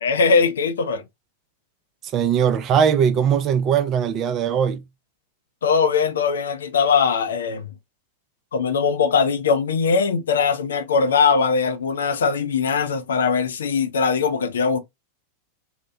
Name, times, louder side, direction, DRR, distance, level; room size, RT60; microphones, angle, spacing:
voice 1, 0.0-1.0 5.6-7.7 8.5-14.8, left 5 dB, 65° left, 0.4 m, -20 dB
voice 2, 2.1-4.8, right 8 dB, 35° right, 0.4 m, -20 dB
2.8 x 2.1 x 2.4 m
figure-of-eight pair, 90°, 0 cm